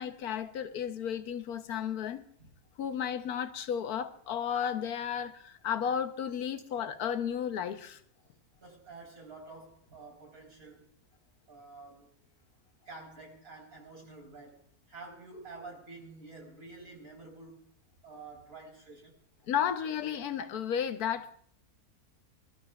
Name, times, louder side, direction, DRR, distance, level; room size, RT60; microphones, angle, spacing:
voice 1, 0.0-2.2 2.8-8.0 19.5-21.3, left 8 dB, 75° left, 1.3 m, -33 dB
voice 2, 8.6-10.9 11.5-12.1 12.9-14.6 14.9-17.6 18.0-19.1, right 3 dB, 65° right, 4.7 m, -49 dB
26.5 x 13.0 x 2.4 m
omnidirectional pair, 1.6 m